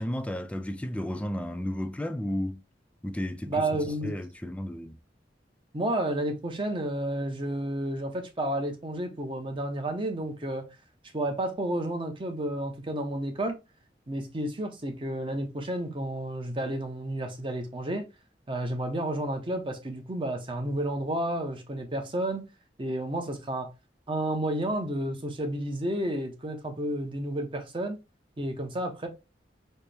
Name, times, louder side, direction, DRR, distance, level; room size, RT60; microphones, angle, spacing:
voice 1, 0.0-2.6 3.0-5.0, left 1 dB, 5° left, 0.3 m, -33 dB
voice 2, 3.5-4.1 5.7-10.6 11.1-13.6 14.1-18.1 18.5-22.4 22.8-23.7 24.1-28.0 28.4-29.1, right 1 dB, 30° right, 0.7 m, -31 dB
4.3 x 2.1 x 3.3 m
head